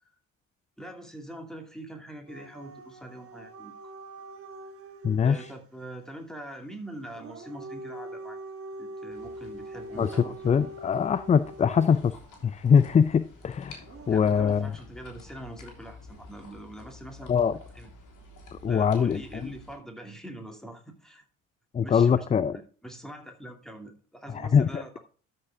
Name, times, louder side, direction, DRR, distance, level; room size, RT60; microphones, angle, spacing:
voice 1, 0.8-3.7 5.2-8.4 8.8-10.4 14.1-17.3 17.7-17.9 18.7-21.2 21.8-22.3 22.5-25.0, right 1 dB, ahead, 2.6 m, -43 dB
Dog / Siren, 2.3-5.6 7.0-12.2 13.8-14.1, right 2 dB, 35° right, 1.7 m, -43 dB
voice 2, 5.0-5.5 10.0-12.2 12.4-14.7 17.3-17.5 18.5-19.2 21.7-22.6 24.3-24.8, left 7 dB, 20° left, 0.4 m, -23 dB
sound 1, 9.1-19.8, left 3 dB, 50° left, 3.4 m, -50 dB
12.5 x 5.5 x 3.6 m
figure-of-eight pair, 50°, 40 cm